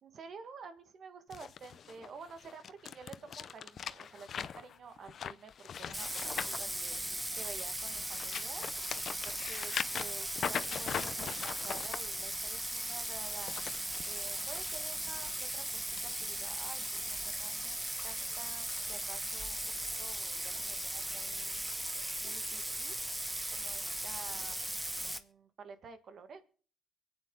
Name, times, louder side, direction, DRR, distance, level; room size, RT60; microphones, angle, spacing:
voice 1, 0.0-7.0 7.3-8.6 9.1-13.5 14.0-22.9 23.5-26.4, right 5 dB, 55° right, 10 dB, 1.6 m, -51 dB
sound 1, 1.3-7.4 7.9-12.0 13.2-14.6 15.1-15.3 16.0-16.1, left 8 dB, 60° left, 0.6 m, -41 dB
Bathtub (filling or washing), 5.9-25.2, right 1 dB, 10° right, 1.1 m, -38 dB
23.5 x 8.9 x 3.8 m, 0.43 s
cardioid pair, 90°, 0 cm